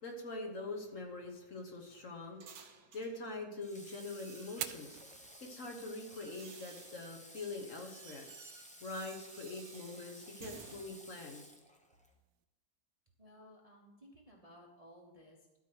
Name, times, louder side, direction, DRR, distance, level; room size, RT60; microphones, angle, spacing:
voice 1, 0.0-5.0 5.4-8.3 8.8-11.5, left 2 dB, 50° left, 2 dB, 1.4 m, -44 dB
sound 1, 0.8-3.2 3.7-4.9 5.7-10.8, right 6 dB, 60° right, 1.3 m, -57 dB
Water / Water tap faucet, 3.6-12.1, equal, 10° left, 0.4 m, -55 dB
Fire, 4.5-12.4, right 12 dB, 75° right, 1.2 m, -52 dB
voice 2, 13.2-15.6, equal, 25° right, -1 dB, 1.0 m, -58 dB
12.5 x 4.6 x 6.2 m, 1.0 s
omnidirectional pair, 1.9 m